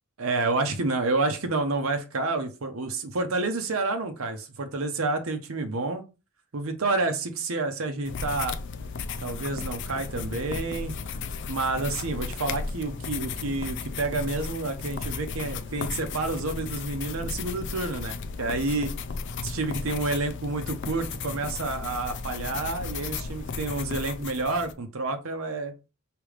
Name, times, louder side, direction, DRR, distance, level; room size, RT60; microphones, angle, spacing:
voice 1, 0.2-6.0 6.5-8.6 9.2-10.9 11.5-18.9 19.4-25.7, right 3 dB, 75° right, 0.8 m, -29 dB
sound 1, 8.1-24.7, left 4 dB, 60° left, 0.4 m, -35 dB
5.0 x 2.9 x 3.3 m
head